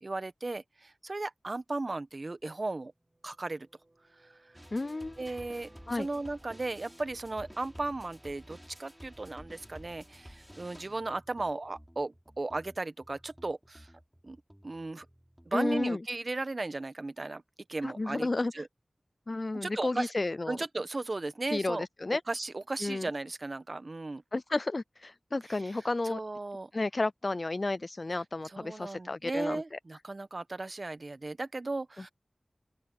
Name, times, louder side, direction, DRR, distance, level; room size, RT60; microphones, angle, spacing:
voice 1, 0.0-2.9 3.2-3.7 5.2-13.9 14.2-15.1 15.5-17.4 17.7-18.3 18.5-18.7 19.5-20.1 20.5-21.9 22.3-24.2 26.0-26.7 28.5-32.1, right 2 dB, 55° right, 1.0 m, -36 dB
sound 1, 3.0-9.0, right 2 dB, 35° right, 6.7 m, -61 dB
sound 2, 4.5-15.9, equal, 5° right, 4.4 m, -53 dB
voice 2, 4.7-5.2 5.9-6.1 15.5-16.0 17.8-18.6 19.3-20.6 21.5-22.2 22.8-23.1 24.3-26.2 26.7-29.8, left 2 dB, 50° left, 0.3 m, -32 dB
open air
wide cardioid pair, 50°, 0 cm